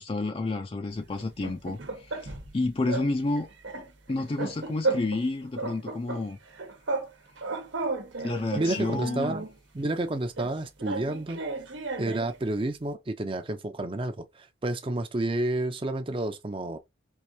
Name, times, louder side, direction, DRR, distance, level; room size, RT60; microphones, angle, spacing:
voice 1, 0.0-3.5 4.1-6.4 8.2-9.4, left 2 dB, 30° left, 0.4 m, -30 dB
sound 1, 1.2-2.5 2.9-3.1 3.4-5.3 5.6-7.1 7.4-9.5 10.4-12.4, right 3 dB, 90° right, 1.1 m, -34 dB
voice 2, 8.6-9.5 9.7-11.4 12.0-16.8, right 2 dB, 30° right, 0.5 m, -30 dB
4.6 x 2.6 x 2.7 m
head